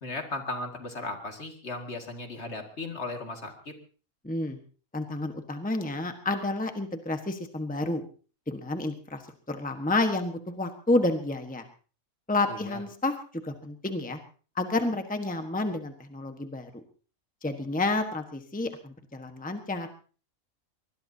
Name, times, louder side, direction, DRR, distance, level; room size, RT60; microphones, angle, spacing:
voice 1, 0.0-3.8 12.5-12.8, left 2 dB, 50° left, 4 dB, 2.4 m, -36 dB
voice 2, 4.2-4.6 4.9-8.0 8.5-9.2 9.5-11.6 12.3-13.1 13.4-14.2 14.5-16.7 17.4-19.9, left 2 dB, 5° left, 6 dB, 1.2 m, -30 dB
24.5 x 20.5 x 2.8 m, 0.39 s
omnidirectional pair, 1.4 m